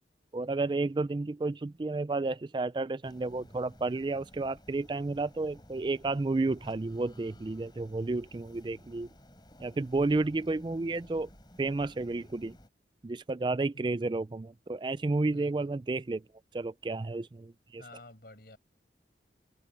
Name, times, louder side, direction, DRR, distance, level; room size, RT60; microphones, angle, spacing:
voice 1, 0.3-9.1 9.6-11.3 11.6-12.6 13.0-16.2 16.5-17.8, right 3 dB, 25° right, 0.3 m, -31 dB
sound 1, 3.0-12.7, equal, 25° left, 5.0 m, -55 dB
voice 2, 15.3-15.7 17.8-18.6, left 2 dB, 60° left, 5.8 m, -51 dB
head